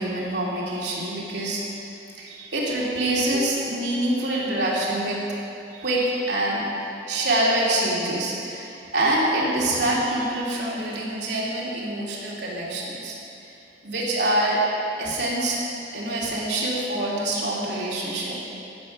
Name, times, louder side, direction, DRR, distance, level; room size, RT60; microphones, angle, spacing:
voice 1, 0.0-1.6 2.2-5.2 5.8-6.6 7.1-13.1 13.8-14.6 15.0-15.6 15.9-18.5, right 1 dB, 70° right, -5 dB, 2.7 m, -25 dB
12.0 x 8.8 x 6.1 m, 2.8 s
head